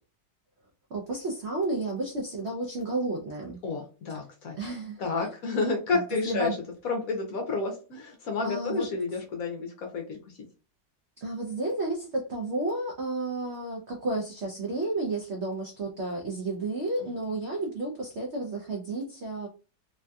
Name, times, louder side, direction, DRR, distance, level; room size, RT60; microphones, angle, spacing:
voice 1, 0.9-3.6 4.6-5.0 5.9-6.6 8.4-8.9 11.2-19.5, right 2 dB, 75° right, 0.6 m, -32 dB
voice 2, 3.6-4.6 5.0-6.6 6.8-10.4 17.0-17.1, left 3 dB, 65° left, 0.9 m, -30 dB
3.3 x 2.6 x 2.2 m
omnidirectional pair, 2.0 m